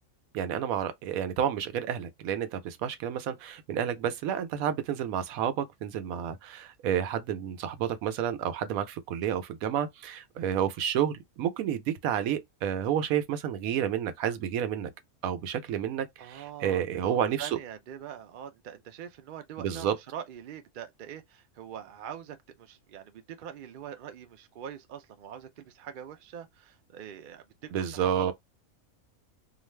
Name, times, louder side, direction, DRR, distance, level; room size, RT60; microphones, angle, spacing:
voice 1, 0.3-14.9 15.2-17.6 19.6-19.9 27.7-28.3, right 9 dB, 80° right, 1.0 m, -30 dB
voice 2, 16.2-27.4 27.9-28.3, right 9 dB, 65° right, 0.5 m, -43 dB
2.5 x 2.4 x 3.1 m
omnidirectional pair, 1.5 m